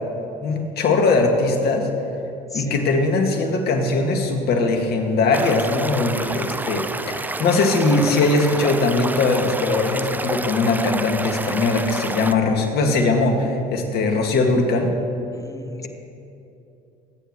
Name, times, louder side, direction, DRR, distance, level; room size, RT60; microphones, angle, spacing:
voice 1, 0.4-1.9 2.5-14.9, left 3 dB, 55° left, 3 dB, 2.1 m, -20 dB
Stream / Liquid, 5.3-12.3, right 2 dB, 10° right, 0.4 m, -29 dB
voice 2, 15.3-15.9, left 3 dB, 15° left, 8 dB, 1.0 m, -35 dB
25.5 x 9.5 x 3.2 m, 2.7 s
hypercardioid pair, 70°, 20 cm